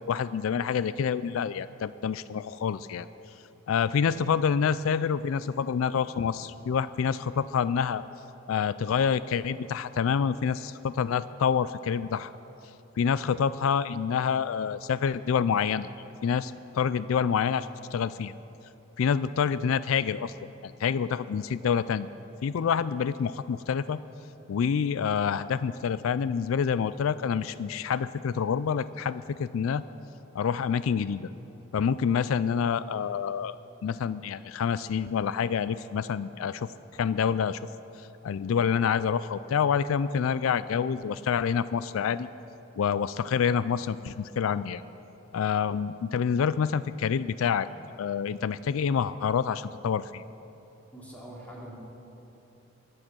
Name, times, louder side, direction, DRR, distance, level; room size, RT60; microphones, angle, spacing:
voice 1, 0.1-3.1 3.7-8.0 8.5-12.3 13.0-15.9 16.2-18.4 19.0-20.3 20.6-22.1 22.4-24.0 24.5-29.8 30.3-31.3 31.7-33.6 33.8-36.7 37.0-37.6 38.0-42.3 42.8-44.8 45.3-47.7 48.0-50.2, left 7 dB, 85° left, 15 dB, 0.4 m, -27 dB
voice 2, 50.9-51.7, right 1 dB, 10° left, -5 dB, 3.0 m, -43 dB
22.5 x 7.8 x 6.1 m, 2.9 s
head